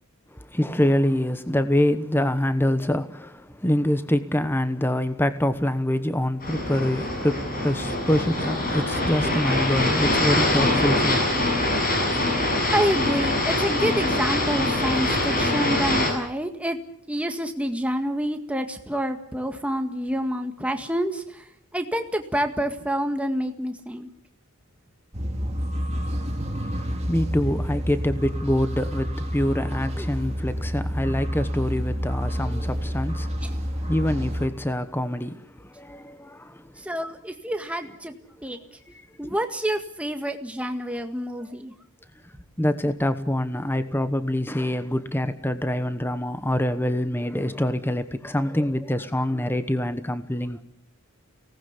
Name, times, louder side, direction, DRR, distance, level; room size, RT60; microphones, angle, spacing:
voice 1, 0.3-11.3 26.6-36.7 38.9-39.3 42.6-50.6, left 1 dB, 10° left, 1.0 m, -25 dB
sound 1, 6.4-16.1, left 1 dB, 40° left, 7.7 m, -24 dB
voice 2, 12.7-16.8 17.1-24.1 30.0-30.2 33.4-33.5 36.8-38.1 38.4-38.6 39.2-41.7, equal, 5° right, 1.8 m, -28 dB
sound 2, 25.1-34.5, equal, 30° right, 2.3 m, -29 dB
24.0 x 19.0 x 8.3 m
head